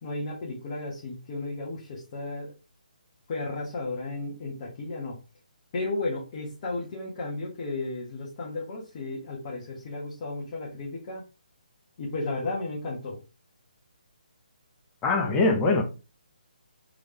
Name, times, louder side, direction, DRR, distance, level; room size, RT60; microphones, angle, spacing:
voice 1, 0.0-2.5 3.3-5.2 5.7-11.2 12.0-13.2, left 2 dB, 35° left, 1.4 m, -34 dB
voice 2, 15.0-15.8, left 3 dB, 15° left, 0.9 m, -22 dB
3.8 x 3.4 x 3.3 m
figure-of-eight pair, 150°, 5 cm